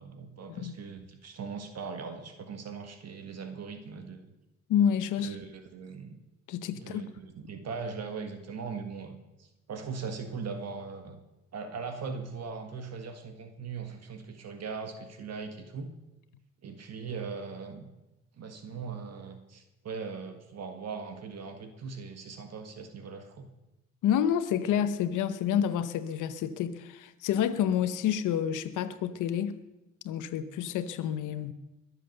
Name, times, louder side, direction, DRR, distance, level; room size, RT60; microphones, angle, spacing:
voice 1, 0.0-4.3 5.2-6.2 6.7-11.2 11.5-15.9 16.6-17.9 18.3-23.5, right 5 dB, 60° right, 6 dB, 1.8 m, -40 dB
voice 2, 4.7-5.4 6.5-7.1 24.0-29.6 30.0-31.5, left 9 dB, 85° left, 12 dB, 1.0 m, -29 dB
21.5 x 7.7 x 6.6 m, 0.99 s
cardioid pair, 90°, 30 cm